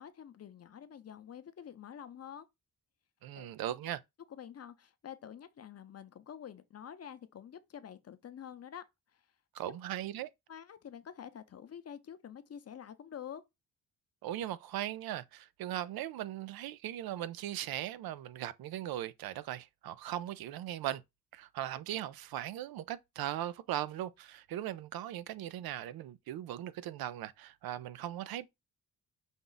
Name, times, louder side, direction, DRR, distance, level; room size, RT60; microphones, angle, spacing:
voice 1, 0.0-2.5 3.3-3.5 4.3-8.8 9.1-9.2 9.6-9.8 10.5-13.4, left 9 dB, 45° left, 0.6 m, -48 dB
voice 2, 3.2-4.0 9.5-10.3 14.2-21.0 21.3-28.5, right 12 dB, 85° right, 0.5 m, -39 dB
5.3 x 2.4 x 3.9 m
cardioid pair, 85°, 35 cm